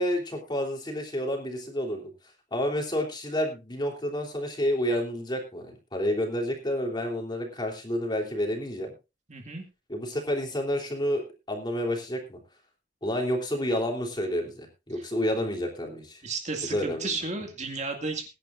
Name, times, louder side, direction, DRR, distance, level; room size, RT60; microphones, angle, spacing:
voice 1, 0.0-2.1 2.5-8.9 9.9-12.4 13.0-16.2 16.6-17.2, equal, 25° left, 2 dB, 3.3 m, -29 dB
voice 2, 9.3-9.6 15.0-15.1 16.2-18.3, right 3 dB, 40° right, 4 dB, 2.2 m, -33 dB
21.5 x 10.5 x 2.5 m, 0.27 s
head